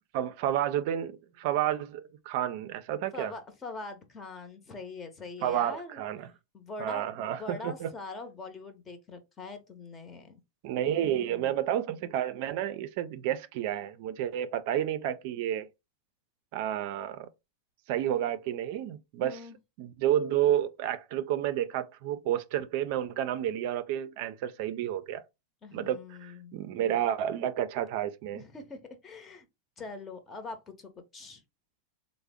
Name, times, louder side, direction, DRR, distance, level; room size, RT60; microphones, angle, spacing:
voice 1, 0.1-3.3 5.4-6.3 6.8-7.9 10.6-15.7 16.5-17.3 17.9-19.4 19.8-25.2 25.7-28.4, right 11 dB, 60° right, 0.4 m, -30 dB
voice 2, 3.1-6.0 6.5-10.4 10.9-11.6 19.2-19.6 25.6-26.6 28.3-29.5 29.8-31.4, left 3 dB, 25° left, 0.9 m, -43 dB
3.4 x 2.0 x 3.4 m
hypercardioid pair, 115°, 0 cm